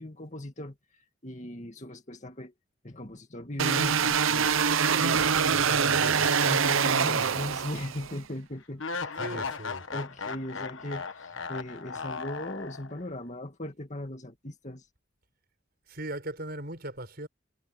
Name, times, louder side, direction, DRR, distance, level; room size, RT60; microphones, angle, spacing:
voice 1, 0.0-2.5 2.8-4.5 5.0-9.5 9.9-14.9, left 1 dB, 35° left, 2.3 m, -39 dB
sound 1, 3.6-8.1, right 6 dB, 70° right, 0.8 m, -25 dB
voice 2, 5.5-6.3 9.2-9.8 15.9-17.3, right 1 dB, 45° right, 5.6 m, -38 dB
sound 2, 6.2-7.5 7.8-7.9 8.8-13.1, left 4 dB, 65° left, 1.3 m, -37 dB
head